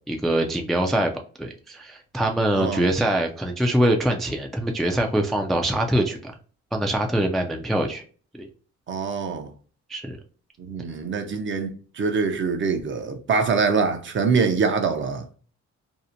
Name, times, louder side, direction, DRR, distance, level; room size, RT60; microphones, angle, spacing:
voice 1, 0.1-6.3 6.7-8.0 8.3-8.5 9.9-10.2, right 1 dB, ahead, 0.3 m, -24 dB
voice 2, 2.5-2.9 8.9-9.5 10.7-15.3, right 5 dB, 40° right, 0.6 m, -24 dB
2.7 x 2.1 x 2.5 m
cardioid pair, 90°, 30 cm